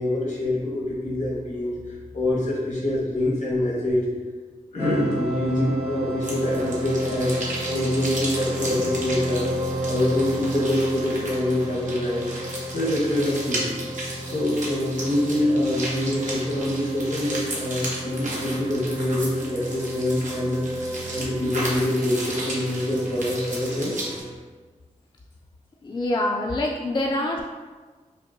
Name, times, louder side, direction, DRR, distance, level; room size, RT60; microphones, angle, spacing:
voice 1, 0.0-1.7 2.1-4.1 4.7-7.3 7.7-9.5 9.9-12.3 12.7-13.7 14.3-23.9, left 1 dB, 75° left, -4 dB, 1.1 m, -25 dB
sound 1, 4.8-24.4, equal, 45° right, 0.8 m, -32 dB
sound 2, 6.2-24.2, right 1 dB, 75° right, 0.9 m, -34 dB
voice 2, 25.8-27.4, left 1 dB, 35° left, -1 dB, 0.3 m, -25 dB
5.4 x 2.2 x 2.6 m, 1.4 s
wide cardioid pair, 75°, 13 cm